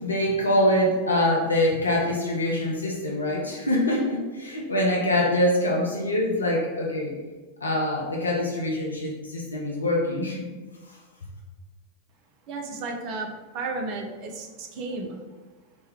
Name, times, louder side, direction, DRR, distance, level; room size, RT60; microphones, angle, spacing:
voice 1, 0.0-7.1 7.6-10.4, left 1 dB, 75° left, -2 dB, 0.5 m, -24 dB
voice 2, 12.5-13.3 13.5-15.2, right 3 dB, 40° right, 2 dB, 0.5 m, -33 dB
2.9 x 2.2 x 3.5 m, 1.3 s
figure-of-eight pair, 90°, 0 cm